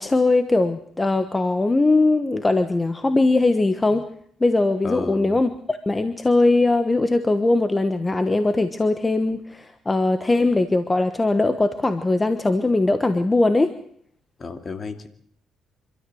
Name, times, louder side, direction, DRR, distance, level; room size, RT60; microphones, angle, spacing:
voice 1, 0.0-4.1 4.4-13.7, left 2 dB, 20° left, 10 dB, 1.2 m, -20 dB
voice 2, 4.8-5.4 14.4-15.1, left 4 dB, 40° left, 8 dB, 2.5 m, -32 dB
26.0 x 13.0 x 7.9 m, 0.63 s
cardioid pair, 90°, 0 cm